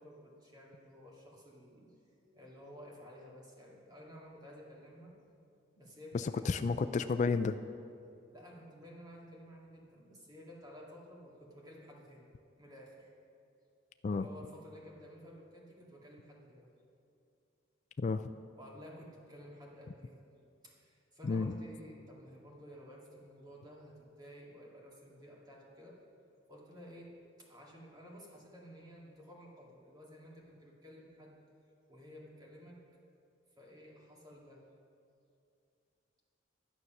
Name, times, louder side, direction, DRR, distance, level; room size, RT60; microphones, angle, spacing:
voice 1, 0.0-1.9 2.3-5.1 5.7-6.6 8.3-12.3 12.6-13.1 14.1-16.7 18.5-20.3 20.6-26.0 26.5-31.4 31.9-32.8 33.6-34.6, equal, 20° right, -4 dB, 2.2 m, -53 dB
voice 2, 6.1-7.6 14.0-14.3 18.0-18.3 21.2-21.5, left 4 dB, 40° left, 10 dB, 0.3 m, -31 dB
11.0 x 9.6 x 5.9 m, 2.5 s
head